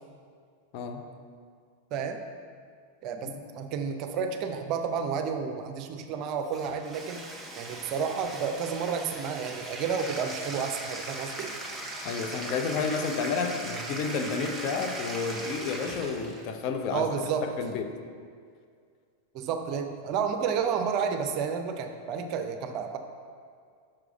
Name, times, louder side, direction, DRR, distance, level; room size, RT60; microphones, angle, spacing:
voice 1, 3.0-7.2 7.5-11.5 16.9-17.5 19.3-23.0, right 6 dB, 40° right, 6 dB, 0.5 m, -31 dB
Bathtub (filling or washing), 6.4-16.5, right 1 dB, 5° right, 1.0 m, -39 dB
voice 2, 12.0-17.1 17.4-17.9, left 5 dB, 40° left, 5 dB, 0.6 m, -31 dB
5.9 x 4.7 x 4.9 m, 2.1 s
figure-of-eight pair, 90°, 0 cm